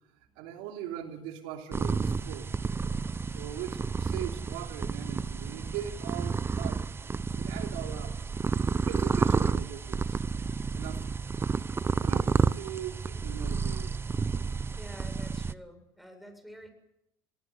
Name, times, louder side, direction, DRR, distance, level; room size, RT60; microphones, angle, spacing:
voice 1, 0.3-2.5 3.3-6.8 7.1-8.2 8.7-10.2 10.7-11.0 12.0-14.0, right 11 dB, 80° right, 4 dB, 3.2 m, -40 dB
sound 1, 1.7-15.5, right 5 dB, 20° right, 0.8 m, -30 dB
voice 2, 14.8-16.7, equal, ahead, 7 dB, 7.5 m, -48 dB
26.0 x 19.5 x 8.0 m, 0.83 s
supercardioid pair, 95°, 11 cm